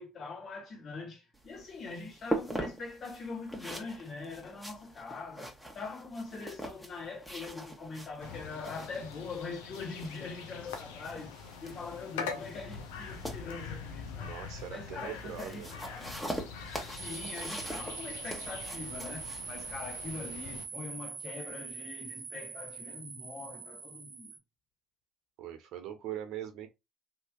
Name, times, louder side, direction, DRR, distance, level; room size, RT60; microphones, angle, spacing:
voice 1, 0.0-14.3 14.7-16.2 17.0-24.3, left 4 dB, 50° left, 1.6 m, -43 dB
sound 1, 1.3-20.2, right 1 dB, ahead, 1.1 m, -43 dB
sound 2, 8.2-20.6, left 6 dB, 85° left, 0.6 m, -44 dB
voice 2, 14.2-15.7 25.4-26.7, right 10 dB, 65° right, 1.0 m, -41 dB
sound 3, 17.0-24.4, right 5 dB, 35° right, 0.6 m, -43 dB
3.2 x 2.7 x 2.4 m
hypercardioid pair, 70°, 0 cm